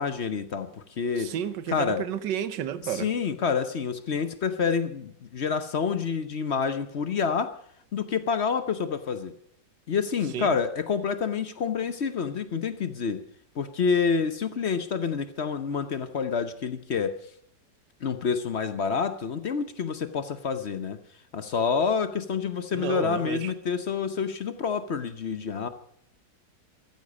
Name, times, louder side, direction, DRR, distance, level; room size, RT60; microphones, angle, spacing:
voice 1, 0.0-1.3 1.7-2.0 2.8-7.6 7.9-9.3 9.9-13.2 13.5-17.2 18.0-21.0 21.3-25.7, left 6 dB, 50° left, 0.9 m, -28 dB
voice 2, 1.2-3.1 10.3-10.5 22.7-23.5, right 9 dB, 90° right, 1.5 m, -31 dB
13.5 x 13.5 x 6.4 m
omnidirectional pair, 1.8 m